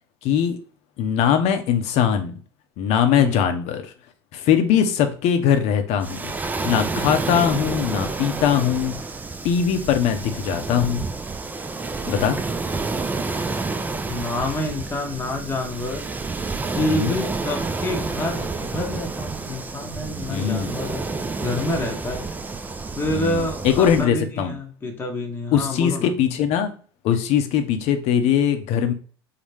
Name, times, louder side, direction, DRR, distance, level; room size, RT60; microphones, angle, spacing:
voice 1, 0.2-0.6 1.0-2.3 2.8-3.9 4.3-6.3 6.6-8.9 9.4-11.0 12.1-12.4 16.8-17.2 20.3-20.7 23.1-24.5 25.5-26.7 27.0-28.9, left 8 dB, 55° left, 7 dB, 0.6 m, -21 dB
Waves surf, 6.0-24.1, right 3 dB, 15° right, 0.3 m, -29 dB
voice 2, 14.0-16.0 16.7-21.0 21.4-22.2 23.0-26.1, left 1 dB, 15° left, 1 dB, 0.8 m, -28 dB
4.0 x 2.1 x 3.3 m, 0.41 s
hypercardioid pair, 70°, 14 cm